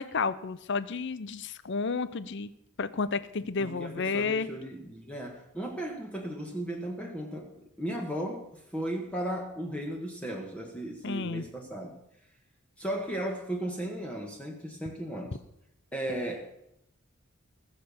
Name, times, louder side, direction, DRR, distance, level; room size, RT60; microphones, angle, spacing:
voice 1, 0.0-2.5 2.8-4.5 11.0-11.4, left 4 dB, 55° left, 15 dB, 0.6 m, -31 dB
voice 2, 3.5-12.0 12.8-15.4 15.9-16.6, right 1 dB, 5° left, 1 dB, 1.5 m, -36 dB
19.0 x 6.8 x 7.0 m, 0.79 s
head